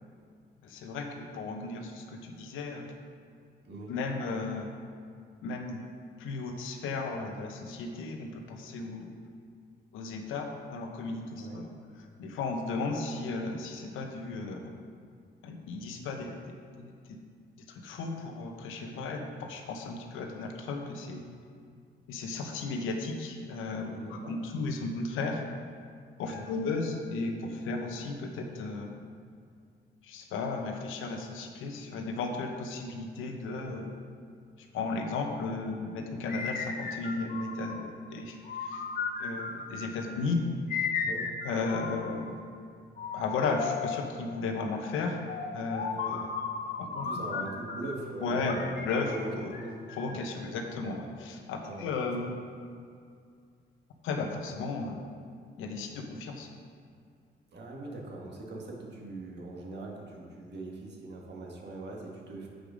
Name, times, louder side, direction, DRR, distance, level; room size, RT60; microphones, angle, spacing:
voice 1, 0.6-2.9 3.9-4.7 5.4-5.8 6.2-9.1 9.9-11.6 12.2-14.7 15.4-16.9 17.6-21.3 22.1-25.4 26.2-28.9 30.0-34.0 34.6-38.9 39.2-40.4 41.4-42.4 43.1-45.2 45.5-46.3 46.8-47.5 48.2-49.6 49.9-52.3 54.0-55.0 55.6-56.5, left 3 dB, 90° left, 3 dB, 0.9 m, -35 dB
voice 2, 23.9-24.3 26.3-26.5 41.0-41.3 45.8-46.2 46.9-50.1 51.6-51.9 57.5-62.5, right 2 dB, 60° right, -1 dB, 1.7 m, -42 dB
sound 1, 36.2-37.9 38.4-40.0 40.7-42.3 43.0-44.2 45.3-48.0 48.5-50.3, left 5 dB, 45° left, 0.9 m, -36 dB
7.7 x 5.1 x 5.0 m, 2.3 s
cardioid pair, 90°, 20 cm